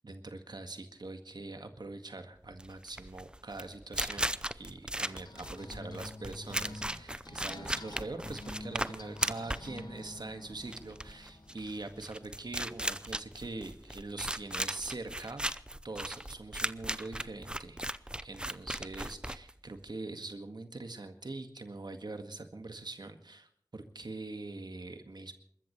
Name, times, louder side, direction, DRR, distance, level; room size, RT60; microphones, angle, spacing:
voice 1, 0.0-15.4 15.8-17.8 18.2-25.3, right 2 dB, 70° right, 7 dB, 1.8 m, -43 dB
sound 1, 2.5-19.9, right 1 dB, 10° right, 0.7 m, -37 dB
sound 2, 5.1-12.7, left 2 dB, 65° left, 1.2 m, -48 dB
28.0 x 14.0 x 3.2 m, 0.67 s
wide cardioid pair, 55°, 8 cm